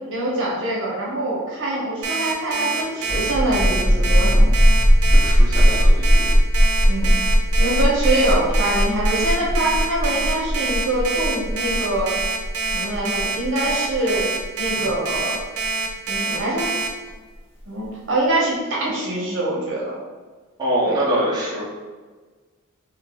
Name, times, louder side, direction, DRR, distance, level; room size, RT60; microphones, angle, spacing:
voice 1, 0.0-4.5 5.6-5.7 6.9-7.1 7.6-12.1 12.7-14.3 14.6-15.3 16.1-16.7 17.7-20.0 20.9-21.0, right 1 dB, 60° right, -5 dB, 1.0 m, -24 dB
Alarm, 2.0-16.9, right 4 dB, 80° right, 0.6 m, -25 dB
sound 1, 3.0-16.4, equal, 25° left, 0.8 m, -18 dB
voice 2, 5.1-6.3 20.6-21.6, right 1 dB, 20° right, -9 dB, 0.9 m, -24 dB
2.8 x 2.6 x 3.8 m, 1.4 s
head